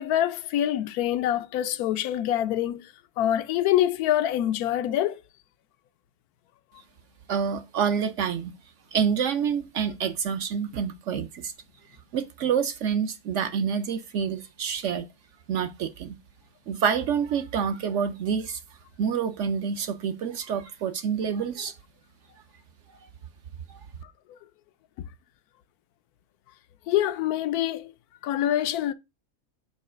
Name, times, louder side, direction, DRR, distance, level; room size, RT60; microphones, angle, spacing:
voice 1, 0.0-2.9 3.2-5.2 26.9-27.9 28.2-28.9, left 12 dB, 80° left, 1.1 m, -25 dB
voice 2, 7.3-8.5 8.9-11.5 12.1-15.0 15.5-16.2 16.7-18.6 19.0-21.7 23.7-23.8, right 7 dB, 65° right, 0.8 m, -27 dB
5.4 x 4.2 x 4.9 m
omnidirectional pair, 1.6 m